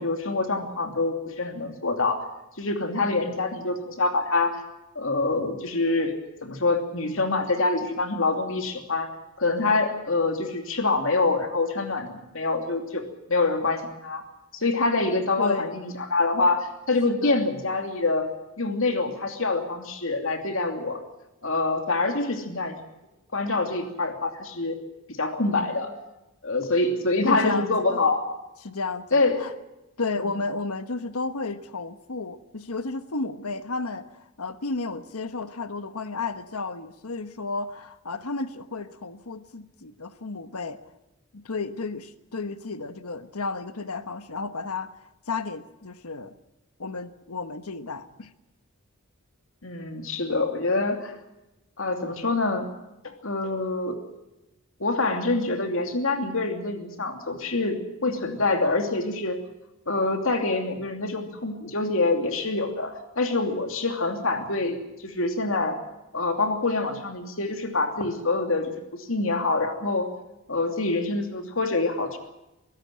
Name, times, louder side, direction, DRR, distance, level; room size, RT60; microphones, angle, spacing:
voice 1, 0.0-2.3 2.6-4.6 4.9-9.1 9.4-13.0 13.3-14.2 14.5-18.3 18.6-21.0 21.4-22.8 23.3-24.8 25.2-25.9 26.4-28.3 29.1-29.4 49.6-51.1 51.8-52.7 53.0-54.0 54.8-59.4 59.9-65.8 66.1-70.1 70.5-72.2, left 3 dB, 65° left, 5 dB, 2.9 m, -26 dB
voice 2, 15.4-15.8 17.1-17.4 27.3-28.1 28.6-29.5 30.0-40.8 41.3-46.3 46.8-48.3, left 3 dB, 85° left, 11 dB, 1.3 m, -33 dB
23.5 x 16.5 x 7.5 m, 0.96 s
head